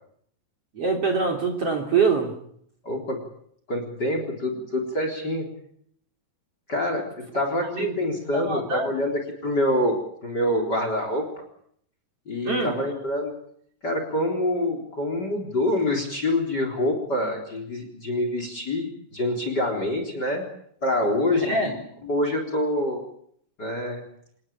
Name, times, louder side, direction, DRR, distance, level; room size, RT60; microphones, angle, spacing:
voice 1, 0.7-2.3 7.7-7.9 8.3-8.9 12.4-12.8 21.4-21.7, right 4 dB, 35° right, 6 dB, 3.7 m, -24 dB
voice 2, 2.8-3.2 3.7-5.5 6.7-11.2 12.3-13.4 13.8-20.5 20.8-23.0 23.6-24.0, left 1 dB, 25° left, 5 dB, 3.9 m, -26 dB
27.0 x 19.0 x 8.8 m, 0.68 s
omnidirectional pair, 5.0 m